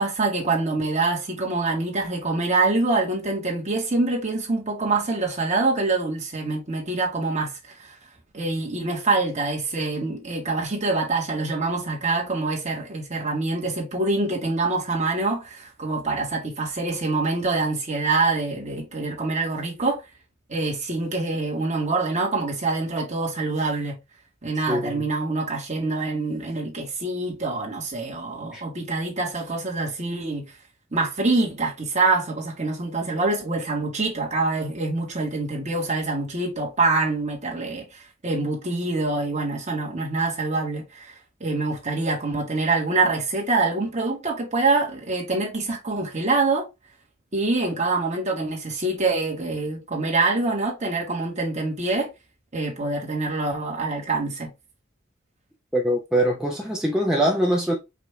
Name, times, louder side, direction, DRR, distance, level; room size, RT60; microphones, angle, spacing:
voice 1, 0.0-7.9 8.3-20.0 20.5-24.0 24.4-30.4 30.9-46.7 47.3-52.1 52.5-54.5, right 3 dB, 35° right, 1.6 m, -25 dB
voice 2, 24.7-25.1 28.5-28.6 55.7-57.7, right 1 dB, 5° right, 0.6 m, -23 dB
5.0 x 2.7 x 3.3 m
head